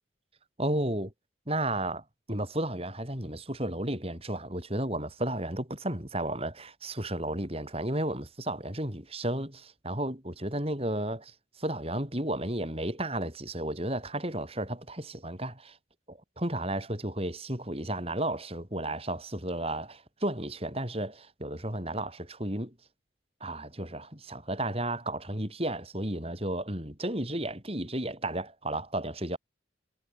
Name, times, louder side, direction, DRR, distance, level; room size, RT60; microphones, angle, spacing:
voice 1, 0.6-1.1 1.5-2.0 2.3-15.8 16.1-22.7 23.4-29.4, right 1 dB, 30° right, 7.1 m, -33 dB
head